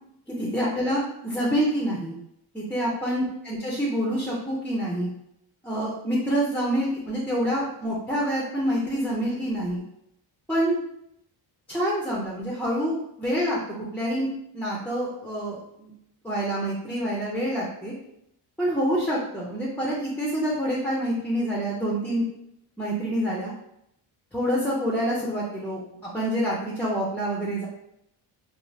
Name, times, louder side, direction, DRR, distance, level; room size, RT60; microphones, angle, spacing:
voice 1, 0.3-2.1 2.5-5.1 5.6-9.8 10.5-10.8 11.7-13.6 13.9-14.3 14.5-15.9 16.2-17.9 18.6-22.3 22.8-23.5 24.3-27.7, equal, 5° left, -5 dB, 0.3 m, -27 dB
3.1 x 2.3 x 2.6 m, 0.77 s
cardioid pair, 140°, 47 cm